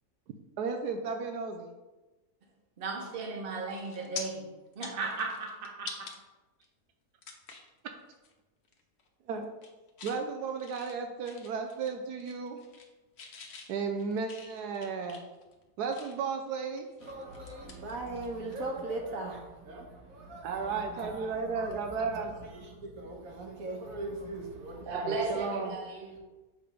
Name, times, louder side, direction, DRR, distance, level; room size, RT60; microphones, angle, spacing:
voice 1, 0.6-1.7 9.3-9.5 10.0-12.6 13.7-15.2 15.8-16.9 20.4-22.3 25.0-25.8, right 5 dB, 85° right, 1.2 m, -34 dB
voice 2, 2.8-4.4 4.7-5.9 24.9-26.1, right 3 dB, 40° right, 1.1 m, -35 dB
sound 1, 3.1-3.4 3.7-4.2 4.7-6.2 6.6-6.7 7.2-7.7 8.1-8.3 8.6-9.1 9.4-10.2 10.6-11.9 12.2-12.9 13.2-16.3 16.8-18.6 18.9-19.1 21.0-21.1, left 5 dB, 50° left, 0.9 m, -46 dB
voice 3, 17.0-25.7 26.1-26.2, right 2 dB, 60° right, 1.5 m, -40 dB
6.7 x 3.4 x 5.1 m
omnidirectional pair, 1.7 m